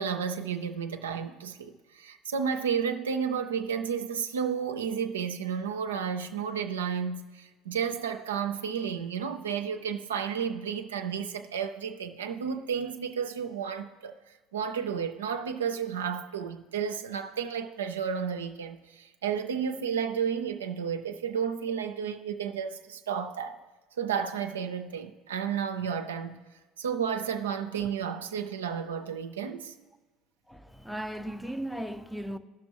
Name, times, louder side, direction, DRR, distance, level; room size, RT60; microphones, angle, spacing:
voice 1, 0.0-23.6 24.0-26.4 26.8-29.7, right 7 dB, 80° right, 0.4 m, -32 dB
voice 2, 30.5-32.4, right 1 dB, ahead, 0.6 m, -36 dB
16.5 x 6.0 x 2.9 m
figure-of-eight pair, 60°, 0 cm